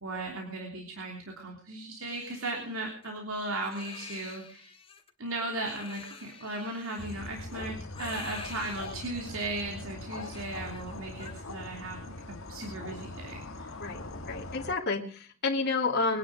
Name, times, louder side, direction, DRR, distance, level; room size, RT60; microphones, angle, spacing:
voice 1, 0.0-4.7 5.2-13.7, right 2 dB, 75° right, 1 dB, 3.2 m, -37 dB
Crying sobbing, 2.1-11.3, left 5 dB, 30° left, 2.7 m, -48 dB
sound 1, 7.0-14.7, left 2 dB, 70° left, 1.7 m, -42 dB
voice 2, 13.8-16.2, left 3 dB, 55° left, -1 dB, 2.9 m, -30 dB
23.5 x 10.0 x 4.9 m, 0.42 s
head